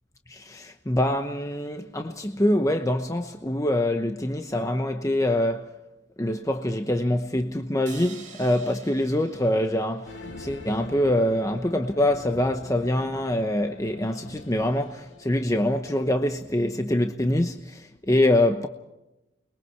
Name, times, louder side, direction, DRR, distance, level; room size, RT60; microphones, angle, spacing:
voice 1, 0.3-5.8 6.2-18.7, left 1 dB, 15° left, 0.9 m, -25 dB
sound 1, 7.9-11.2, right 5 dB, 40° right, 6.9 m, -48 dB
sound 2, 10.1-16.7, left 1 dB, 65° left, 3.3 m, -45 dB
29.5 x 22.5 x 4.6 m
head